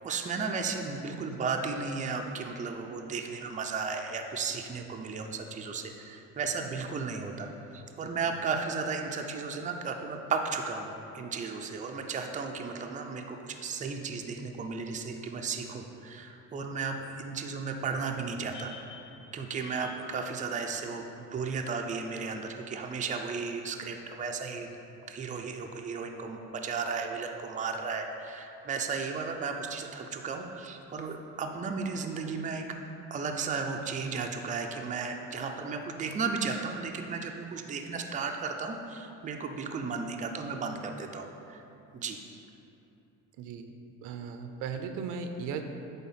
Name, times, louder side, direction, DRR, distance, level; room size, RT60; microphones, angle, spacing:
voice 1, 0.0-18.7 19.3-24.7 25.1-32.7 33.1-41.6 41.9-42.2, right 5 dB, 25° right, 3 dB, 0.6 m, -34 dB
sound 1, 18.5-21.5 22.5-22.6, left 4 dB, 70° left, 1.0 m, -51 dB
voice 2, 43.4-43.7 44.0-45.6, right 5 dB, 80° right, 6 dB, 0.7 m, -38 dB
8.4 x 3.6 x 5.7 m, 2.8 s
cardioid pair, 115°, 31 cm